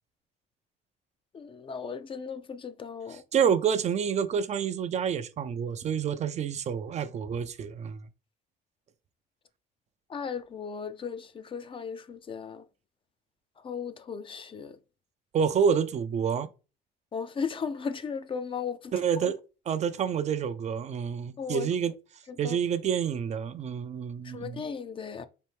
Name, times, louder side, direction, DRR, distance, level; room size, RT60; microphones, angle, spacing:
voice 1, 1.3-3.2 10.1-12.6 13.6-14.8 17.1-18.9 19.2-19.3 21.4-21.7 22.4-22.6 24.2-25.3, left 6 dB, 30° left, 0.5 m, -36 dB
voice 2, 3.1-8.1 15.3-16.5 18.9-19.4 19.7-21.9 22.4-24.6, right 7 dB, 40° right, 0.4 m, -28 dB
4.3 x 2.6 x 3.2 m
cardioid pair, 110°, 17 cm